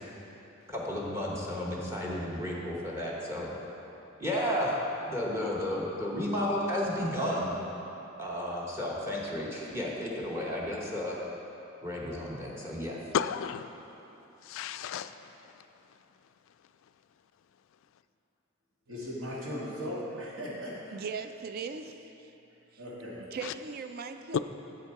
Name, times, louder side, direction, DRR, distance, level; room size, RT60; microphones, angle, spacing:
voice 1, 0.7-3.5 4.2-4.8 5.1-7.5 8.2-11.2 11.8-13.0, left 1 dB, 15° right, -4 dB, 0.9 m, -32 dB
voice 2, 13.1-13.7 14.4-15.6 23.4-23.5 24.3-24.4, left 8 dB, 70° left, 12 dB, 0.3 m, -33 dB
voice 3, 18.9-21.0 22.8-23.2, equal, 75° right, -6 dB, 2.0 m, -38 dB
voice 4, 20.9-22.3 23.3-24.4, right 5 dB, 50° right, 8 dB, 0.4 m, -39 dB
7.7 x 7.4 x 4.6 m, 3.0 s
head